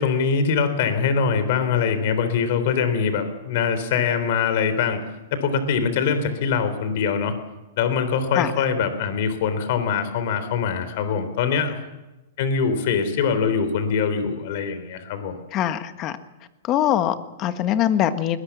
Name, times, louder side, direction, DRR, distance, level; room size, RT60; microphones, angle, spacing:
voice 1, 0.0-5.0 5.3-7.3 7.8-11.8 12.4-15.4, left 6 dB, 55° left, 10 dB, 3.6 m, -23 dB
voice 2, 15.5-16.1 16.7-18.4, left 11 dB, 30° left, 10 dB, 1.5 m, -22 dB
21.0 x 20.0 x 7.3 m, 1.1 s
hypercardioid pair, 150°, 0 cm